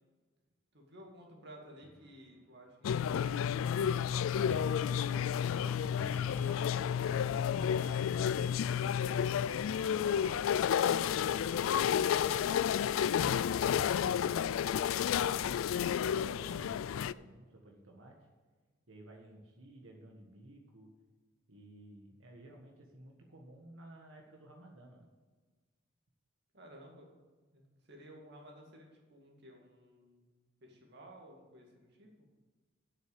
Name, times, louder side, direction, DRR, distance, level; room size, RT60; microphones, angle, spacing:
voice 1, 0.7-4.1 26.5-27.1 27.5-32.1, equal, 60° right, 0 dB, 2.3 m, -55 dB
sound 1, 1.8-2.1 4.5-7.2, left 1 dB, 10° left, 0.6 m, -49 dB
sound 2, 2.8-17.1, left 8 dB, 90° left, 0.3 m, -31 dB
voice 2, 6.0-6.6 7.5-8.7 9.2-12.8 14.6-18.2 18.9-20.9 21.5-25.1, right 1 dB, 90° right, 0 dB, 1.5 m, -55 dB
8.2 x 6.6 x 8.0 m, 1.4 s
head